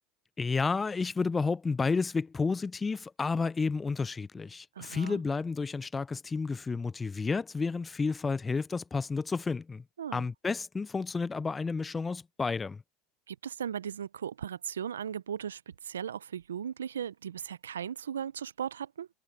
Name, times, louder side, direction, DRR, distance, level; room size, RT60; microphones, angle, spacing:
voice 1, 0.4-9.8 10.1-12.8, left 4 dB, 20° left, 0.4 m, -31 dB
voice 2, 4.8-5.2 10.0-10.3 13.3-19.1, right 8 dB, 90° right, 0.6 m, -37 dB
hypercardioid pair, 85°, 0 cm